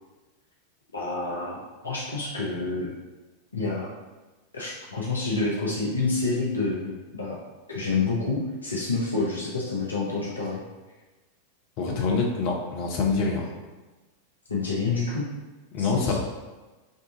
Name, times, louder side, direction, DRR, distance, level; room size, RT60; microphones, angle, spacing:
voice 1, 0.9-1.6 1.8-2.9 3.5-3.9 4.5-7.4 7.7-10.6 14.5-15.3 15.8-16.1, left 3 dB, 75° left, -5 dB, 0.8 m, -28 dB
voice 2, 11.8-13.5 15.7-16.1, left 4 dB, 45° left, 0 dB, 0.9 m, -25 dB
5.3 x 2.6 x 3.8 m, 1.2 s
figure-of-eight pair, 90°, 0 cm